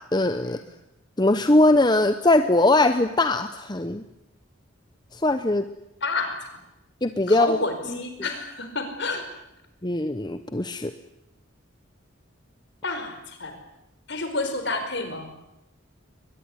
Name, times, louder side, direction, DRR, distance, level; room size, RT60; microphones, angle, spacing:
voice 1, 0.1-0.6 1.2-4.0 5.1-5.6 7.0-7.6 9.8-10.9, left 2 dB, 20° left, 9 dB, 0.9 m, -21 dB
voice 2, 6.0-6.4 7.3-9.2 12.8-13.6 14.1-15.3, left 3 dB, 55° left, 7 dB, 5.0 m, -29 dB
22.5 x 21.0 x 9.8 m, 0.87 s
head